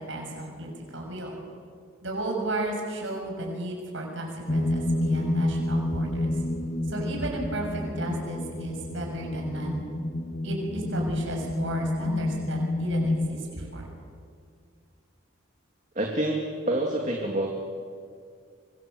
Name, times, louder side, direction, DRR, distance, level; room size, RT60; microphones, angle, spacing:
voice 1, 0.0-1.3 2.0-6.3 6.9-9.9 10.4-13.9, right 1 dB, 60° right, 1 dB, 6.5 m, -33 dB
sound 1, 4.5-13.3, left 1 dB, 35° left, 1.2 m, -29 dB
voice 2, 16.0-17.5, right 1 dB, 35° right, 0 dB, 2.5 m, -27 dB
25.0 x 25.0 x 7.8 m, 2.2 s
head